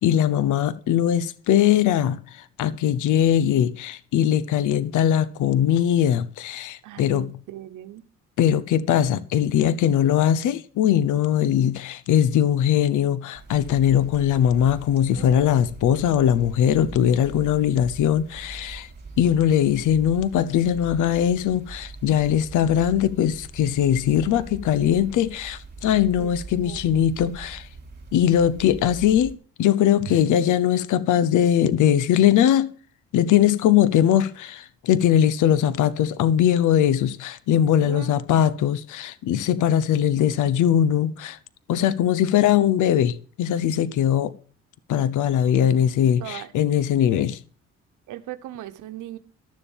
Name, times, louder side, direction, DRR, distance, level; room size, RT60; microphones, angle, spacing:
voice 1, 0.0-7.3 8.4-18.9 19.2-27.7 28.1-32.7 33.1-41.4 41.7-44.3 44.9-47.4, left 10 dB, 80° left, 0.9 m, -21 dB
voice 2, 6.8-8.0 15.1-15.6 17.6-17.8 26.2-26.3 26.6-27.0 30.0-30.2 37.8-38.2 46.2-46.5 48.1-49.2, right 12 dB, 80° right, 1.1 m, -38 dB
sound 1, 13.3-29.4, right 4 dB, 35° right, 3.3 m, -41 dB
12.0 x 7.1 x 7.1 m
cardioid pair, 90°, 30 cm